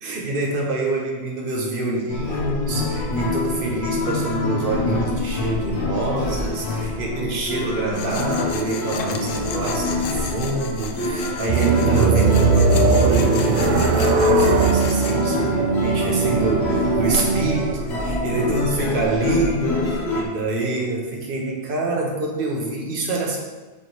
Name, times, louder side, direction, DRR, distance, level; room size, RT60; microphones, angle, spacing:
voice 1, 0.0-23.4, right 2 dB, 45° right, -1 dB, 1.4 m, -26 dB
sound 1, 2.1-20.2, left 2 dB, 55° left, 1.4 m, -26 dB
Tools, 7.9-15.2, left 5 dB, 80° left, 1.1 m, -35 dB
sound 2, 11.5-17.7, right 4 dB, 70° right, 0.4 m, -19 dB
8.5 x 5.1 x 3.2 m, 1.2 s
omnidirectional pair, 1.3 m